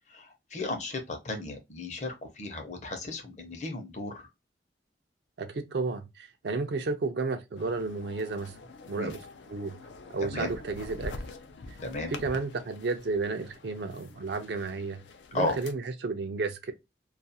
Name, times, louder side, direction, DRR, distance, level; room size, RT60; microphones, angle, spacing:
voice 1, 0.1-4.3 9.0-9.1 10.2-10.5 11.8-12.1 15.3-15.6, left 2 dB, 40° left, 0.7 m, -34 dB
voice 2, 5.4-8.6 8.9-9.2 9.5-9.8 10.1-11.2 12.1-15.0 15.3-16.7, right 3 dB, 65° right, 0.4 m, -32 dB
sound 1, 7.6-15.7, left 3 dB, 85° left, 0.4 m, -45 dB
2.4 x 2.3 x 2.6 m
head